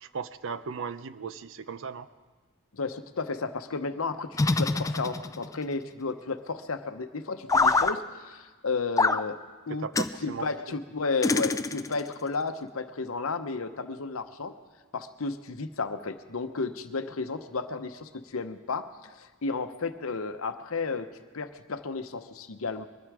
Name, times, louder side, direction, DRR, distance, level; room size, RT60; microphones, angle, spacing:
voice 1, 0.0-2.1 9.7-10.8, right 5 dB, 65° right, 13 dB, 0.6 m, -37 dB
voice 2, 2.7-9.4 9.7-9.9 10.2-14.5 14.9-22.9, left 4 dB, 70° left, 9 dB, 0.8 m, -33 dB
sound 1, 4.3-5.6 7.5-7.9 9.0-9.2 9.9-10.1 11.2-12.1, left 3 dB, 15° left, 0.4 m, -25 dB
21.5 x 12.5 x 4.8 m, 1.4 s
head